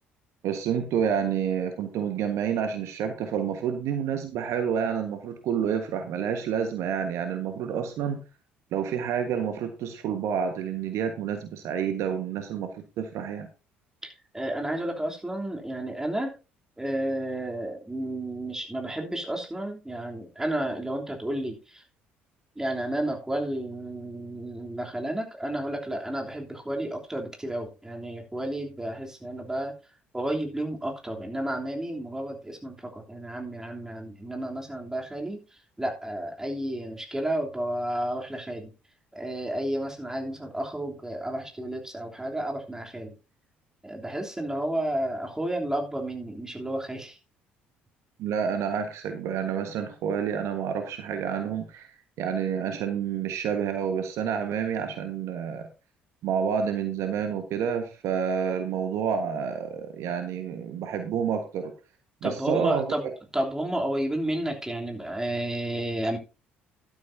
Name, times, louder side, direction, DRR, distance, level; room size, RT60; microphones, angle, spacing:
voice 1, 0.4-8.2 8.7-12.7 13.0-13.5 48.2-51.9 52.2-55.7 56.2-61.7 62.2-63.1, right 7 dB, 55° right, 7 dB, 1.5 m, -29 dB
voice 2, 14.0-16.3 16.8-21.8 22.6-29.7 30.1-35.4 35.8-38.7 39.1-43.1 43.8-47.2 62.2-66.2, right 1 dB, 10° right, 1 dB, 3.2 m, -31 dB
12.0 x 12.0 x 2.7 m, 0.31 s
figure-of-eight pair, 50°, 6 cm